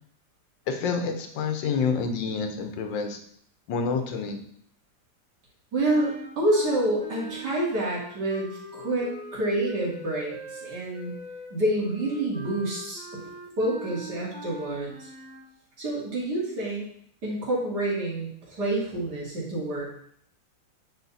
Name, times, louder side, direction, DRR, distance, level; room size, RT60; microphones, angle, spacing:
voice 1, 0.7-3.2 3.7-4.4, left 5 dB, 85° left, 6 dB, 1.7 m, -28 dB
voice 2, 5.7-11.1 11.5-13.2 13.6-15.1 15.8-16.9 17.2-19.9, right 1 dB, 60° right, -5 dB, 3.1 m, -28 dB
sound 1, 5.8-15.5, right 1 dB, 5° left, 1.6 m, -42 dB
9.3 x 4.5 x 4.2 m, 0.65 s
omnidirectional pair, 2.0 m